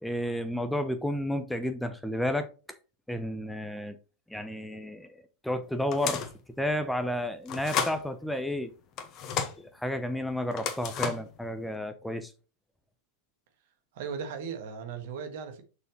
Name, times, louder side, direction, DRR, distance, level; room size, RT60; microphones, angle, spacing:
voice 1, 0.0-2.5 3.1-3.9 4.3-6.2 6.6-8.7 9.6-12.3, left 1 dB, 5° left, 0.8 m, -31 dB
sound 1, 5.9-6.4 7.5-8.0 9.0-9.6 10.5-11.3, left 7 dB, 35° left, 1.3 m, -32 dB
voice 2, 13.9-15.6, right 6 dB, 50° right, 1.8 m, -37 dB
6.7 x 6.4 x 3.1 m
figure-of-eight pair, 90°, 0 cm